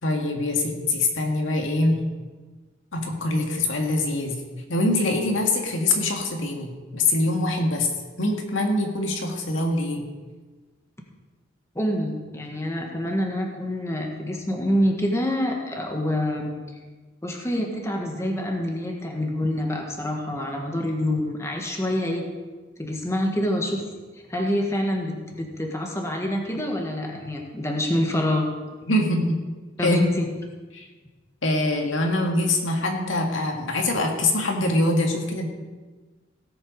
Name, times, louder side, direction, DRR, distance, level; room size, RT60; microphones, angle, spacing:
voice 1, 0.0-2.0 2.9-4.4 4.7-7.9 8.2-10.0 28.9-29.4 29.8-30.0 30.7-30.9 31.4-35.5, left 2 dB, 80° left, 1 dB, 2.0 m, -24 dB
voice 2, 11.7-16.5 17.2-22.2 22.8-23.8 24.3-28.5 29.8-30.3, left 1 dB, 15° left, 1 dB, 1.6 m, -26 dB
17.0 x 7.9 x 5.3 m, 1.3 s
head